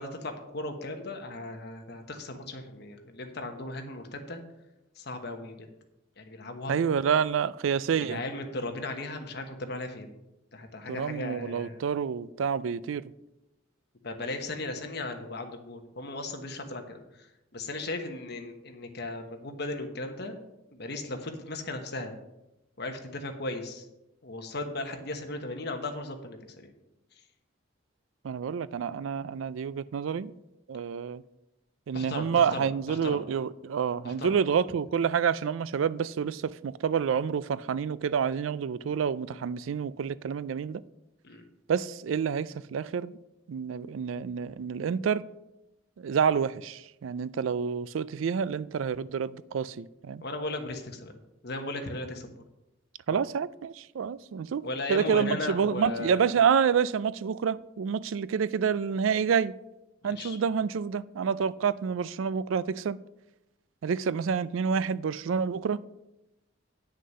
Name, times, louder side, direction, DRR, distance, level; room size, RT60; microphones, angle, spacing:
voice 1, 0.0-4.4 5.0-5.6 6.2-6.7 8.0-10.1 10.5-11.8 14.0-20.4 20.7-22.2 22.8-23.9 24.2-26.7 31.9-33.2 34.0-34.4 41.2-41.4 50.2-52.3 54.6-56.3 60.0-60.4, left 2 dB, 55° left, 1.2 m, -37 dB
voice 2, 6.7-8.2 10.9-13.0 28.2-30.3 30.7-31.2 31.9-40.8 41.7-43.2 43.5-45.2 46.0-50.2 53.1-54.6 54.9-59.5 60.0-63.0 63.8-65.8, right 7 dB, 85° right, 0.4 m, -28 dB
9.4 x 6.4 x 5.5 m
head